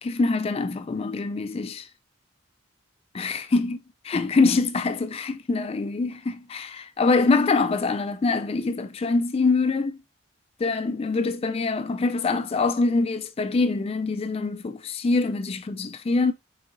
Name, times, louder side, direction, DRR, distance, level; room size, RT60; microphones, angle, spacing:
voice 1, 0.0-1.9 3.1-3.8 4.0-10.0 10.6-16.3, left 3 dB, 30° left, 0.3 m, -24 dB
4.7 x 4.4 x 2.6 m
head